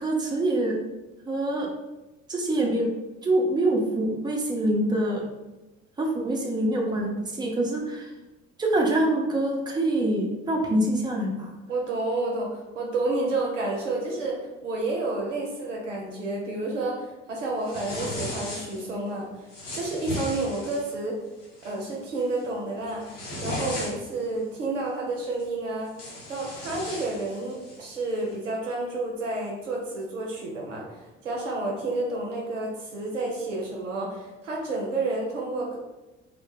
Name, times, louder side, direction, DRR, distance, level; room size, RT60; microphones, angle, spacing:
voice 1, 0.0-0.7 1.3-1.7 2.3-2.9 3.2-5.3 6.0-8.1 8.6-11.5, right 1 dB, 10° right, -1 dB, 0.5 m, -25 dB
voice 2, 11.7-19.3 19.7-21.2 21.6-23.1 23.4-25.9 26.3-30.8 31.2-35.8, right 2 dB, 90° right, -2 dB, 0.6 m, -30 dB
sound 1, 17.6-18.9 19.5-20.9 21.4-21.7 22.1-22.4 22.8-24.2 25.4-25.5 25.8-27.8, left 1 dB, 85° left, 0.7 m, -36 dB
2.1 x 2.1 x 3.1 m, 1.0 s
figure-of-eight pair, 50°, 36 cm